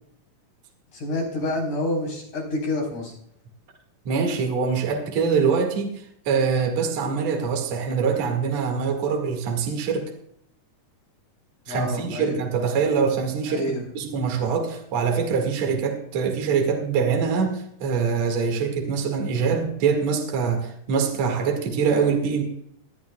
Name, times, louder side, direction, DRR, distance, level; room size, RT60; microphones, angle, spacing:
voice 1, 0.9-3.1 11.7-12.4 13.5-13.8, left 1 dB, 55° left, -2 dB, 5.3 m, -28 dB
voice 2, 4.1-10.1 11.7-13.6 13.9-22.4, right 5 dB, 55° right, 2 dB, 2.9 m, -24 dB
21.0 x 13.0 x 2.3 m, 0.70 s
omnidirectional pair, 3.9 m